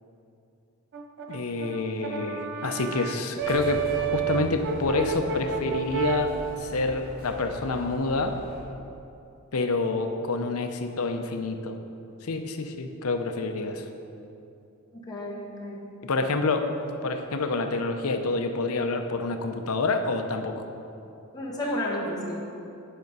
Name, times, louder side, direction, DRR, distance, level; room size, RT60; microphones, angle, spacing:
Brass instrument, 0.9-6.4, right 7 dB, 50° right, 0.5 m, -30 dB
voice 1, 1.3-6.3 6.6-8.4 9.5-11.8 12.2-13.9 16.0-16.7 17.0-20.6, left 3 dB, 70° left, 6 dB, 0.7 m, -28 dB
sound 1, 3.4-8.6, equal, 75° right, 2.3 m, -42 dB
voice 2, 14.9-15.8 21.3-22.5, left 1 dB, 20° left, -5 dB, 1.5 m, -32 dB
10.0 x 5.2 x 5.4 m, 2.7 s
head